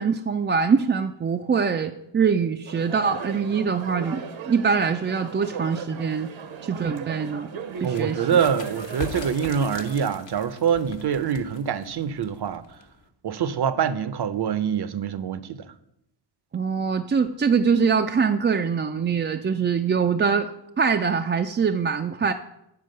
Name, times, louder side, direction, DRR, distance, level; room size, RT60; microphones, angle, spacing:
voice 1, 0.0-6.3 6.6-7.5 7.8-8.2 16.5-22.3, right 6 dB, 25° right, 0.3 m, -23 dB
sound 1, 2.7-10.1, right 7 dB, 70° right, 0.9 m, -37 dB
sound 2, 7.7-13.1, left 4 dB, 65° left, 1.2 m, -41 dB
voice 2, 7.8-12.6 13.2-15.7, right 7 dB, 55° right, 0.7 m, -25 dB
9.5 x 4.5 x 6.5 m
cardioid pair, 95°, 49 cm